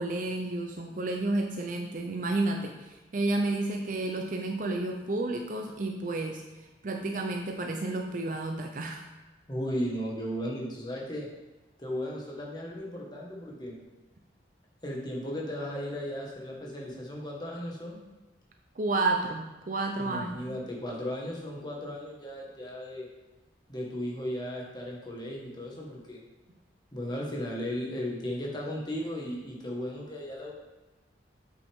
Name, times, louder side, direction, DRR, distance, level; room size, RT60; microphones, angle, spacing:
voice 1, 0.0-9.0 18.8-20.6, right 2 dB, 45° right, 3 dB, 0.5 m, -31 dB
voice 2, 9.5-11.3 11.8-13.8 14.8-18.0 20.0-23.1 23.7-26.2 26.9-30.5, equal, 25° left, -2 dB, 1.4 m, -35 dB
7.9 x 5.9 x 3.6 m, 1.1 s
head